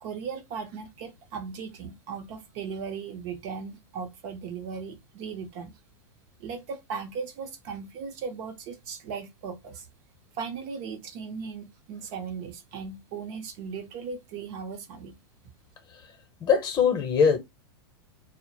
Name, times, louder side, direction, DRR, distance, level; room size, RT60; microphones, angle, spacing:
voice 1, 0.0-5.8 6.4-9.9 10.3-15.2, right 5 dB, 50° right, 0.7 m, -37 dB
voice 2, 16.4-17.4, left 6 dB, 30° left, 0.8 m, -21 dB
2.0 x 2.0 x 2.9 m
hypercardioid pair, 125°, 14 cm